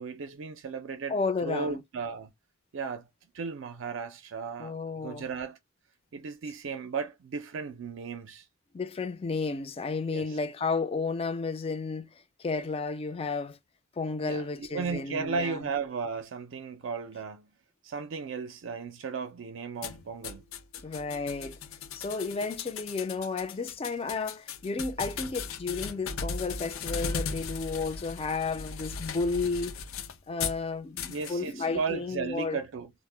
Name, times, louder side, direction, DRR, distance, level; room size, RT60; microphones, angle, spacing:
voice 1, 0.0-2.3 2.7-3.1 3.3-5.6 6.1-8.5 10.1-10.4 14.2-17.5 17.8-20.4 31.1-32.9, right 5 dB, 65° right, 0.4 m, -35 dB
voice 2, 1.1-1.8 4.6-5.3 8.7-12.1 12.4-13.6 14.0-15.7 20.8-21.6 21.9-29.8 30.3-32.6, left 4 dB, 30° left, 0.4 m, -32 dB
sound 1, 19.8-30.6 31.0-31.4, left 5 dB, 90° left, 0.4 m, -37 dB
2.1 x 2.0 x 3.2 m
head